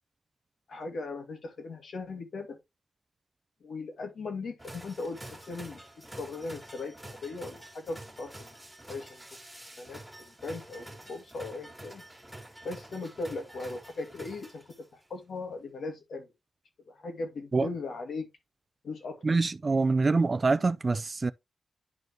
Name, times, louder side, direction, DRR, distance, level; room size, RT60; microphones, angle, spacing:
voice 1, 0.7-2.6 3.6-5.8 6.2-8.5 8.9-9.2 9.8-12.0 12.6-16.3 16.9-18.3 18.8-19.4, left 3 dB, 70° left, 2.2 m, -38 dB
sound 1, 4.6-15.0, right 1 dB, ahead, 2.0 m, -48 dB
voice 2, 19.2-21.3, right 3 dB, 30° right, 0.3 m, -25 dB
10.5 x 4.3 x 3.0 m
wide cardioid pair, 165°, 0 cm